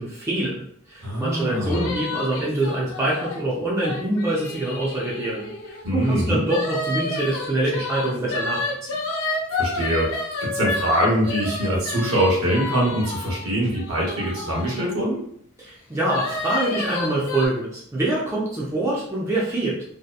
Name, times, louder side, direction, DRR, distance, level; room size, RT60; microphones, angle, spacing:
voice 1, 0.0-8.7 15.6-19.8, right 1 dB, 15° right, -6 dB, 0.4 m, -25 dB
voice 2, 1.0-1.9 5.8-6.4 9.5-15.2, equal, 65° right, -3 dB, 1.0 m, -23 dB
sound 1, 1.7-5.8 6.5-14.9 16.1-17.5, left 2 dB, 65° left, 0.6 m, -30 dB
2.7 x 2.1 x 2.3 m, 0.65 s
head